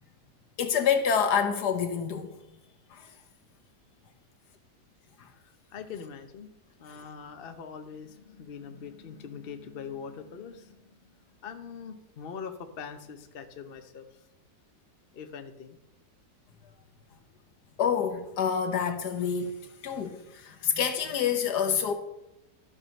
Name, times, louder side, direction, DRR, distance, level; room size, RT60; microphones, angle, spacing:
voice 1, 0.6-2.4 2.9-3.1 5.2-5.3 6.9-7.0 17.8-19.6 19.8-21.9, left 7 dB, 70° left, 1.6 m, -27 dB
voice 2, 5.4-6.5 6.8-11.1 11.4-14.1 15.1-15.8, left 6 dB, 45° left, 0.9 m, -42 dB
12.5 x 6.2 x 5.5 m
omnidirectional pair, 1.8 m